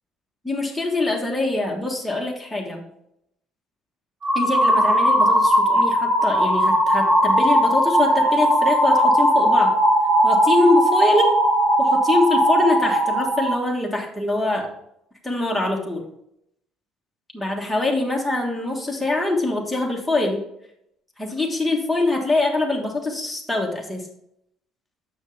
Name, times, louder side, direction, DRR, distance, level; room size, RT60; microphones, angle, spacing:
voice 1, 0.4-2.8 4.3-9.7 10.2-11.3 11.8-14.7 15.2-16.0 17.3-20.4 21.2-24.0, left 2 dB, ahead, -1 dB, 1.3 m, -23 dB
sound 1, 4.2-13.5, equal, 30° right, 1.5 m, -18 dB
6.7 x 6.2 x 3.4 m, 0.77 s
cardioid pair, 145°, 0 cm